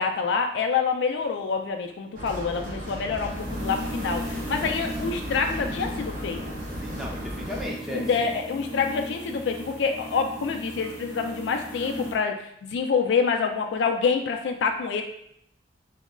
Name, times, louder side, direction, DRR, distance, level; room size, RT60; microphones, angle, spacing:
voice 1, 0.0-6.4 7.9-15.0, left 5 dB, 80° left, 4 dB, 0.3 m, -27 dB
sound 1, 2.2-7.7, equal, 50° right, 0.6 m, -35 dB
sound 2, 2.5-12.1, equal, 25° right, 0.8 m, -37 dB
voice 2, 6.8-8.3, equal, ahead, -2 dB, 0.4 m, -36 dB
2.2 x 2.0 x 3.6 m, 0.72 s
head